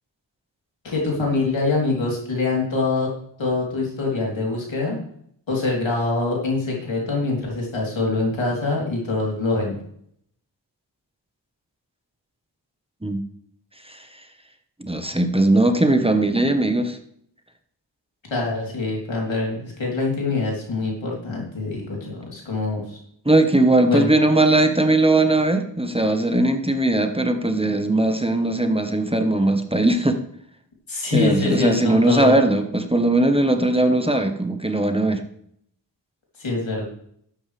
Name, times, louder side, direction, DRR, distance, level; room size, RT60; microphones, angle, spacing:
voice 1, 0.8-3.1 3.4-5.0 5.5-9.8 18.3-23.0 23.9-24.1 30.9-32.4 36.4-36.8, left 3 dB, 90° left, -2 dB, 3.6 m, -24 dB
voice 2, 14.8-17.0 23.2-30.2 31.1-35.2, right 2 dB, 10° right, 7 dB, 1.2 m, -19 dB
12.0 x 8.9 x 3.4 m, 0.68 s
cardioid pair, 40°, 45 cm